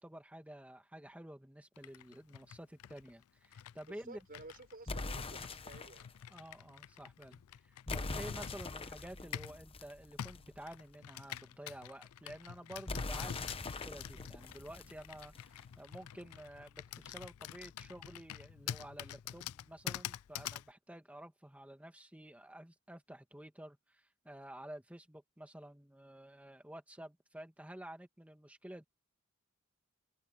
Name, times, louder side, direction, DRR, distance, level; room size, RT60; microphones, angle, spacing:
voice 1, 0.0-4.2 6.3-28.8, right 1 dB, 5° right, 1.9 m, -51 dB
Computer keyboard, 1.8-9.6 10.2-20.7, left 10 dB, 90° left, 0.4 m, -47 dB
voice 2, 3.9-6.1, right 2 dB, 45° right, 5.4 m, -53 dB
sound 1, 4.9-6.1 7.9-10.6 12.9-15.6, left 3 dB, 25° left, 0.9 m, -42 dB
open air
head